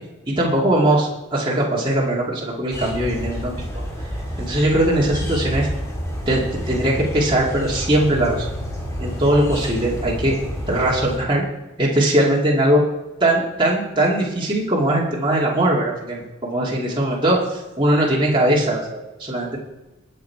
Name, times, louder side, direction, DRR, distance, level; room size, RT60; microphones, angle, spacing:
voice 1, 0.3-3.6 4.4-5.7 6.3-8.5 9.0-10.4 10.7-11.4 11.8-12.8 13.2-19.6, right 1 dB, 25° right, -4 dB, 2.4 m, -20 dB
sound 1, 2.7-11.2, equal, 15° left, 3.4 m, -29 dB
21.0 x 7.6 x 4.7 m, 1.0 s
head